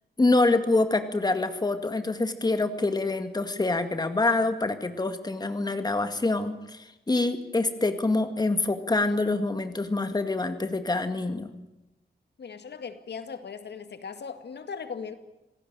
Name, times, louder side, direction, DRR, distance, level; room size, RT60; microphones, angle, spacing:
voice 1, 0.2-11.5, left 2 dB, 25° left, 8 dB, 2.0 m, -26 dB
voice 2, 12.4-15.1, left 6 dB, 85° left, 9 dB, 2.2 m, -38 dB
27.0 x 18.0 x 8.9 m, 0.97 s
wide cardioid pair, 145°, 17 cm